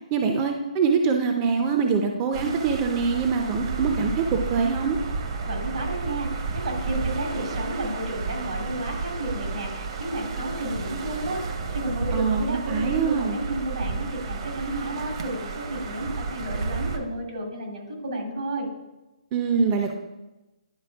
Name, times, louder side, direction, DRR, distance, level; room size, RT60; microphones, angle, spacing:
voice 1, 0.1-5.0 12.1-13.4 19.3-19.9, right 5 dB, 25° right, 4 dB, 0.5 m, -24 dB
sound 1, 2.3-17.0, right 4 dB, 45° right, 0.8 m, -32 dB
voice 2, 5.5-18.7, right 1 dB, 80° right, 0 dB, 2.7 m, -32 dB
10.5 x 4.2 x 3.4 m, 1.0 s
hypercardioid pair, 160°, 4 cm